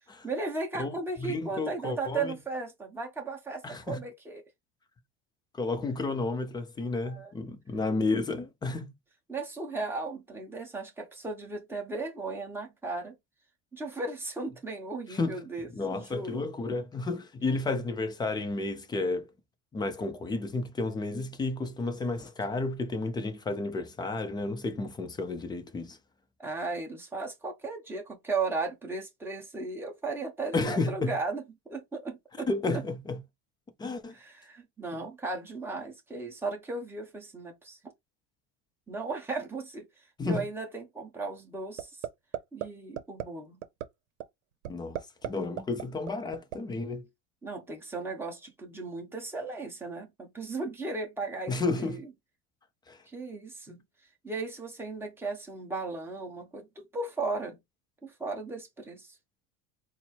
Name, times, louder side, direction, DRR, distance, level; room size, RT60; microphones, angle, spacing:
voice 1, 0.2-4.4 7.0-7.3 9.3-13.1 13.7-16.4 26.4-32.8 34.1-37.9 38.9-42.1 42.5-43.6 47.4-52.1 53.1-53.8 54.2-57.6 58.0-59.2, right 3 dB, 5° right, 1.0 m, -36 dB
voice 2, 0.8-2.3 3.6-4.0 5.5-8.9 15.1-15.4 15.7-19.3 19.7-26.0 30.5-31.1 32.5-33.2 33.8-34.1 34.9-35.0 40.2-40.4 44.7-47.1 51.5-52.0 52.9-53.0, left 3 dB, 10° left, 0.4 m, -32 dB
sound 1, 41.8-42.1 42.3-42.7 43.0-43.2 43.6-43.8 44.2-44.3 44.6-45.3 45.6-46.6, right 12 dB, 90° right, 0.7 m, -33 dB
4.2 x 2.0 x 4.4 m
supercardioid pair, 145°, 37 cm